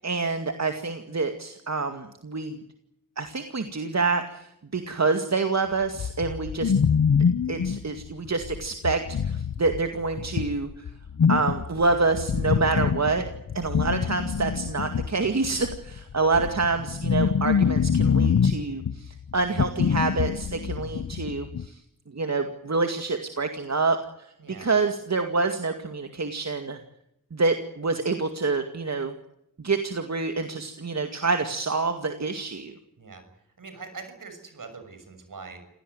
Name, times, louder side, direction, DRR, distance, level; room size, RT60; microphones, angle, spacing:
voice 1, 0.0-2.6 3.2-4.5 4.7-6.7 7.5-10.8 11.3-13.3 13.5-21.8 22.1-24.0 24.5-26.8 27.3-29.1 29.6-32.7, right 3 dB, 50° right, 6 dB, 2.2 m, -27 dB
sound 1, 6.0-21.7, left 6 dB, 65° left, 1.0 m, -25 dB
voice 2, 33.6-35.6, right 4 dB, 70° right, 8 dB, 6.6 m, -43 dB
27.0 x 17.5 x 9.6 m, 0.80 s
cardioid pair, 60°, 33 cm